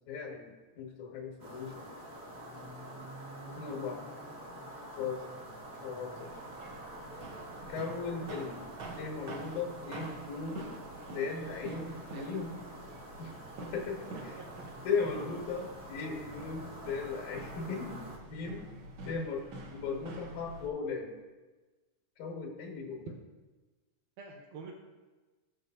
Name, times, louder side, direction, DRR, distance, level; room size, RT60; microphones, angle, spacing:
voice 1, 0.1-1.9 3.4-4.0 5.0-5.2 5.8-6.3 7.7-8.7 9.0-10.6 11.1-12.5 13.2-13.3 13.6-14.4 14.8-18.0 18.3-18.7 19.1-21.1 22.2-23.1, left 5 dB, 90° left, -1 dB, 2.7 m, -37 dB
sound 1, 1.4-18.2, right 1 dB, 35° right, 1.5 m, -47 dB
sound 2, 6.2-20.7, right 2 dB, 65° right, 1.3 m, -47 dB
voice 2, 12.1-12.5 14.4-14.7 24.2-24.7, right 4 dB, 85° right, 0 dB, 2.3 m, -47 dB
16.5 x 6.5 x 2.7 m, 1.2 s
omnidirectional pair, 3.3 m